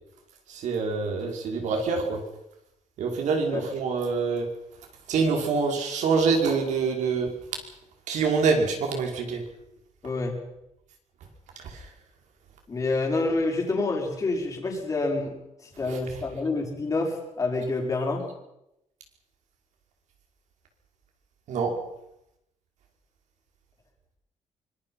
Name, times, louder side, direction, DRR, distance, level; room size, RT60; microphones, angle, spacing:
voice 1, 0.5-2.2 3.0-4.5 5.1-7.3 8.1-9.4 11.6-11.9 15.8-16.0 21.5-21.7, right 4 dB, 70° right, 3 dB, 5.5 m, -25 dB
voice 2, 10.0-10.4 12.7-15.3 15.6-18.2, left 3 dB, 25° left, 0 dB, 5.6 m, -27 dB
25.0 x 22.5 x 5.8 m, 0.85 s
cardioid pair, 155°, 13 cm